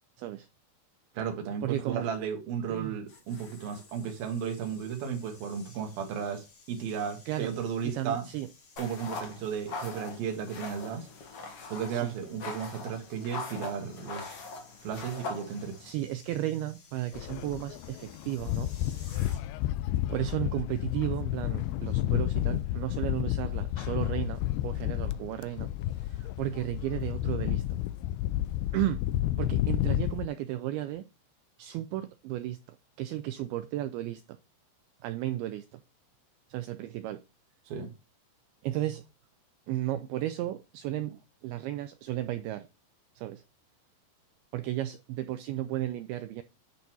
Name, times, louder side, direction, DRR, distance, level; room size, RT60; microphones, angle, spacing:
voice 1, 0.2-0.5 1.6-2.1 2.7-3.0 7.3-7.6 7.8-8.5 11.9-12.2 15.8-19.2 20.1-25.7 26.0-27.6 28.7-29.0 29.4-31.1 31.6-34.4 35.0-35.8 36.5-37.2 38.6-39.1 39.7-42.7 43.2-43.4 44.5-46.4, right 14 dB, 85° right, 2.2 m, -34 dB
voice 2, 1.1-8.3 8.8-11.1 11.7-14.4 14.8-15.8 37.7-37.9, right 7 dB, 65° right, 3.3 m, -34 dB
sound 1, 2.8-19.8 20.0-20.3, left 4 dB, 45° left, 2.4 m, -57 dB
sound 2, 8.8-15.9, left 3 dB, 65° left, 1.4 m, -41 dB
sound 3, 17.1-30.3, left 14 dB, 85° left, 2.2 m, -31 dB
10.5 x 4.1 x 4.5 m
omnidirectional pair, 4.9 m